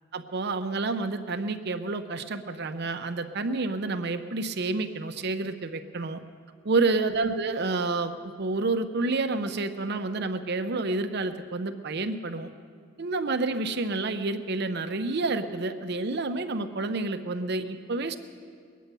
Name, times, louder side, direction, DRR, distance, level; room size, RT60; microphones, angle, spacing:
voice 1, 0.1-6.2 6.6-12.5 13.0-18.2, right 3 dB, 60° right, 8 dB, 0.7 m, -29 dB
21.5 x 9.2 x 6.8 m, 2.1 s
head